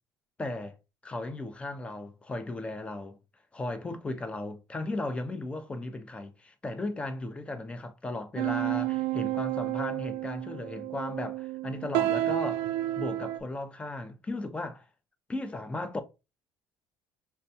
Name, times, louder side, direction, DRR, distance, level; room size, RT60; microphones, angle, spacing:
voice 1, 0.4-0.8 1.0-3.2 3.5-12.6 13.0-14.8 15.3-16.0, left 2 dB, 10° left, 0.4 m, -36 dB
sound 1, 8.4-13.4, right 15 dB, 80° right, 0.4 m, -30 dB
4.3 x 2.2 x 2.6 m
cardioid pair, 155°, 9 cm